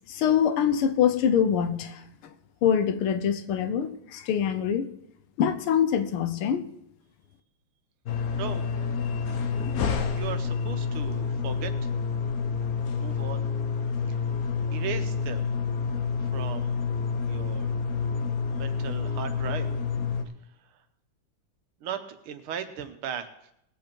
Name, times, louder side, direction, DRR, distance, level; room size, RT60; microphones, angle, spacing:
voice 1, 0.1-2.0 2.6-4.9 5.4-6.7, left 8 dB, 85° left, 1.7 m, -24 dB
sound 1, 8.1-20.2, left 5 dB, 55° left, 1.2 m, -28 dB
voice 2, 10.1-11.9 12.9-13.5 14.1-14.2 14.7-15.6 15.9-16.8 17.3-17.8 18.5-19.7 20.5-20.8 21.8-23.3, right 8 dB, 90° right, 1.9 m, -37 dB
19.5 x 7.6 x 4.5 m
omnidirectional pair, 2.3 m